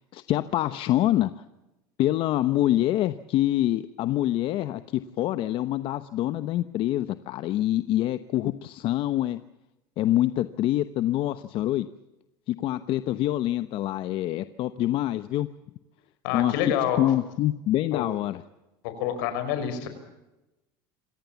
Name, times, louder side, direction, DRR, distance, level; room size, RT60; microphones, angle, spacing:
voice 1, 0.0-1.3 2.0-9.4 10.0-11.9 12.5-15.5 16.3-16.5 17.0-18.4, left 14 dB, 55° left, 12 dB, 1.0 m, -25 dB
voice 2, 16.2-17.0 17.9-18.1 18.8-19.9, left 9 dB, 75° left, 9 dB, 5.3 m, -27 dB
27.0 x 17.5 x 7.2 m, 0.97 s
supercardioid pair, 115°, 11 cm